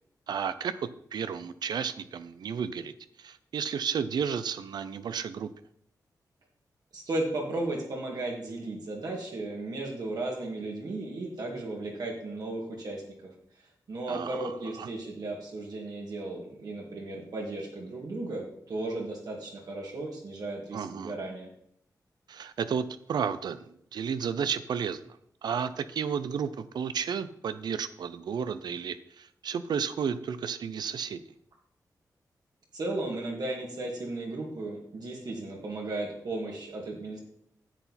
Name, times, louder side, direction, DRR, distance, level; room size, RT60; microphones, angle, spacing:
voice 1, 0.3-0.7 1.1-2.9 3.2-5.5 14.1-14.9 20.7-21.1 22.3-25.0 25.4-31.2, right 7 dB, 90° right, 13 dB, 0.5 m, -32 dB
voice 2, 6.9-13.3 13.9-21.5 32.7-37.2, right 2 dB, 70° right, -1 dB, 2.3 m, -35 dB
9.9 x 8.0 x 4.2 m, 0.69 s
wide cardioid pair, 135°, 7 cm